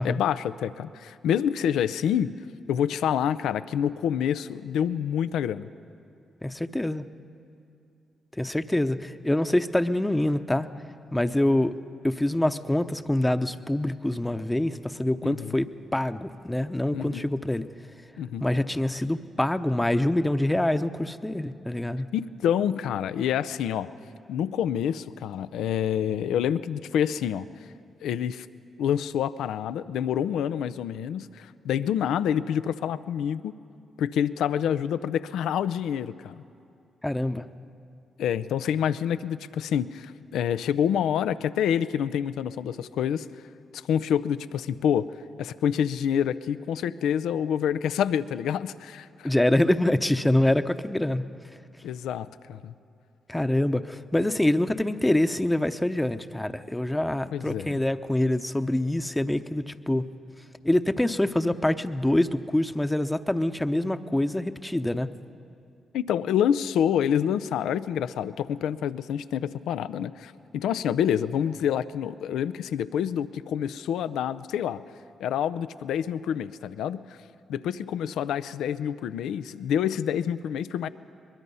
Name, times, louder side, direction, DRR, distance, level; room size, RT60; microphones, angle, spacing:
voice 1, 0.0-2.3 2.7-5.7 15.2-15.6 16.9-17.3 18.2-18.4 22.1-23.9 24.3-27.5 28.0-28.5 28.8-33.5 34.0-36.4 38.2-43.3 43.7-49.3 51.8-52.7 57.3-57.8 65.9-74.8 75.2-77.2 77.5-80.9, left 9 dB, 80° left, 14 dB, 0.5 m, -27 dB
voice 2, 6.4-7.0 8.4-10.7 11.1-11.7 12.0-17.7 18.4-22.1 37.0-37.5 49.2-51.2 53.3-60.0 60.6-65.1, left 1 dB, 10° left, 10 dB, 0.8 m, -25 dB
23.0 x 21.5 x 5.6 m, 2.6 s
supercardioid pair, 55°, 0 cm